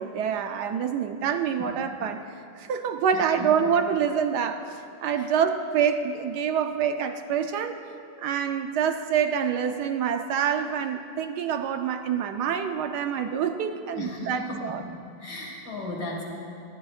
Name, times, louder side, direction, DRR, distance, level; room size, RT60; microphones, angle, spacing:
voice 1, 0.0-2.3 2.6-4.6 5.0-7.8 8.2-14.8, right 7 dB, 70° right, 7 dB, 1.1 m, -26 dB
voice 2, 3.1-3.6 5.1-5.3 14.0-14.9 15.2-16.2, left 2 dB, 55° left, -1 dB, 2.5 m, -36 dB
19.0 x 14.5 x 2.4 m, 2.7 s
omnidirectional pair, 2.1 m